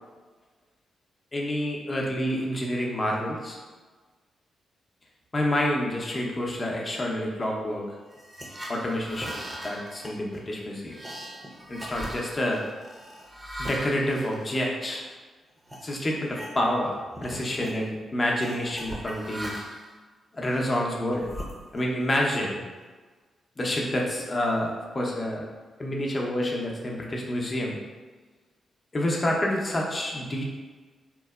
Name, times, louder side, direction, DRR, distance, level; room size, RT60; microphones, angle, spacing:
voice 1, 1.3-3.6 5.3-7.8 8.7-9.3 9.6-10.9 11.7-12.6 13.6-15.0 15.8-19.5 20.3-21.3 21.7-22.6 23.6-25.5 25.8-27.8 28.9-30.5, left 1 dB, 35° left, -1 dB, 0.6 m, -28 dB
sound 1, 8.1-15.2 15.7-15.8 16.2-16.9 17.1-17.8 18.4-19.9 20.5-22.0, equal, 20° right, 0.6 m, -40 dB
2.9 x 2.0 x 2.3 m, 1.3 s
hypercardioid pair, 45°, 0 cm